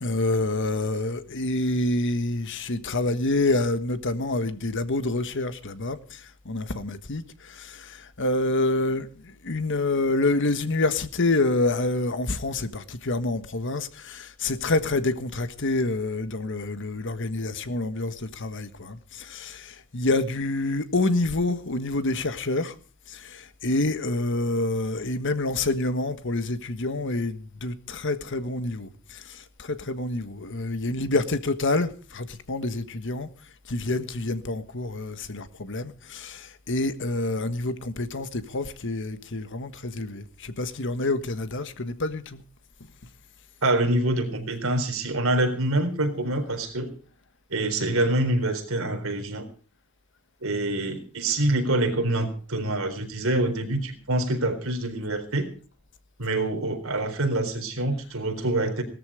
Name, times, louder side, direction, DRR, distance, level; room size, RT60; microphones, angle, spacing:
voice 1, 0.0-22.7 23.1-33.3 33.7-42.4, left 2 dB, 60° left, 1.5 m, -27 dB
voice 2, 43.6-46.9 47.5-49.5 50.4-55.5 56.2-58.8, right 1 dB, 70° right, 4.1 m, -26 dB
18.0 x 13.5 x 5.0 m
head